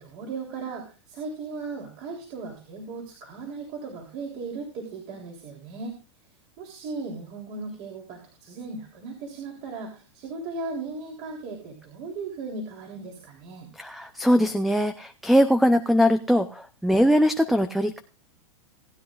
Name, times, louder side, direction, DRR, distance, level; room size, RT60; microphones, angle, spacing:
voice 1, 0.0-5.9 6.6-13.7, right 4 dB, 45° right, 0 dB, 3.4 m, -37 dB
voice 2, 13.8-18.0, equal, ahead, 11 dB, 0.6 m, -21 dB
18.5 x 10.5 x 2.5 m, 0.35 s
hypercardioid pair, 120°, 17 cm